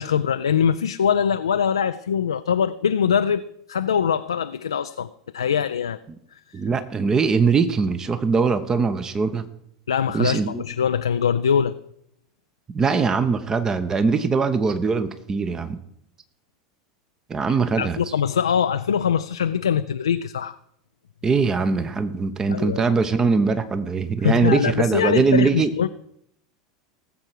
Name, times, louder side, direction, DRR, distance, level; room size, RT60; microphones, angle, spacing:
voice 1, 0.0-6.0 6.5-6.6 9.9-11.7 17.8-20.6 22.5-22.8 24.2-25.9, left 7 dB, 75° left, 0.4 m, -23 dB
voice 2, 6.5-9.5 10.1-10.6 12.7-15.8 17.3-18.0 21.2-25.7, right 5 dB, 20° right, 0.9 m, -21 dB
19.0 x 7.6 x 4.7 m
figure-of-eight pair, 80°, 3 cm